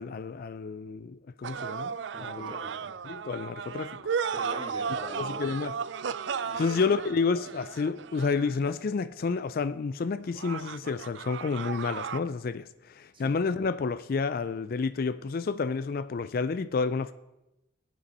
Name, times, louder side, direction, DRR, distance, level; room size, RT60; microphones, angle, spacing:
voice 1, 0.0-1.9 2.2-2.5 3.0-4.0 5.2-5.7 6.6-17.1, left 4 dB, 50° left, 0.4 m, -30 dB
sound 1, 1.4-8.7 10.3-12.2, right 6 dB, 65° right, 0.4 m, -35 dB
voice 2, 2.1-2.9 4.3-5.4 6.3-6.8 13.1-13.3, right 1 dB, 25° right, 2.2 m, -42 dB
20.5 x 8.3 x 4.2 m
head